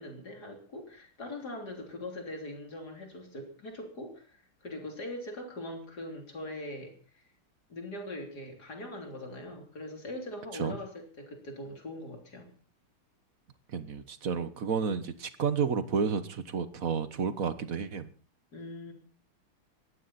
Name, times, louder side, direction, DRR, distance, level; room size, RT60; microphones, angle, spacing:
voice 1, 0.0-7.2 7.7-12.5 18.5-18.9, left 1 dB, 45° left, 3 dB, 3.9 m, -42 dB
voice 2, 13.7-18.1, right 6 dB, 45° right, 12 dB, 1.4 m, -31 dB
19.5 x 15.0 x 4.2 m, 0.40 s
omnidirectional pair, 2.4 m